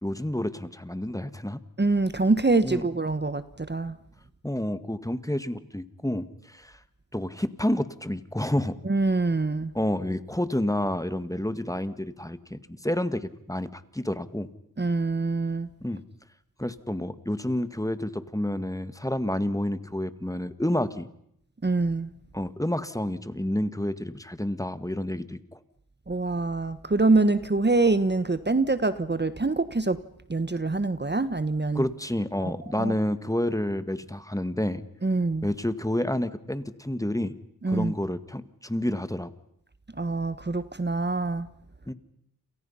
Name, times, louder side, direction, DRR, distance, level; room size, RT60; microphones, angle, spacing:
voice 1, 0.0-1.6 2.6-2.9 4.4-6.8 7.1-8.8 9.7-14.5 15.8-16.0 16.6-21.1 22.3-25.6 31.8-34.8 35.4-37.3 37.7-39.3 41.9-42.0, left 1 dB, 10° left, 12 dB, 1.7 m, -29 dB
voice 2, 1.8-3.9 8.8-9.7 14.8-15.7 21.6-22.1 26.1-30.0 30.3-31.8 32.4-32.9 35.0-35.5 37.6-37.9 40.0-41.5, right 3 dB, 30° right, 13 dB, 1.3 m, -25 dB
29.5 x 28.5 x 5.7 m, 0.75 s
cardioid pair, 45°, 35 cm